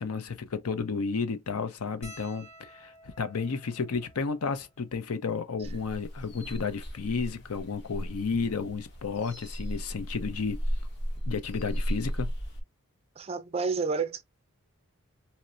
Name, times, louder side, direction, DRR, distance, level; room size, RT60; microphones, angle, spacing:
voice 1, 0.0-10.6 11.2-12.3, left 5 dB, 85° left, 0.6 m, -32 dB
sound 1, 2.0-6.6 7.4-7.5 7.7-7.9 9.1-9.3 10.8-10.9 11.1-11.3, right 1 dB, 30° left, 1.0 m, -53 dB
sound 2, 5.6-12.6, equal, 50° left, 1.0 m, -35 dB
voice 2, 13.2-14.2, right 4 dB, 30° right, 0.3 m, -30 dB
4.3 x 2.0 x 2.5 m
head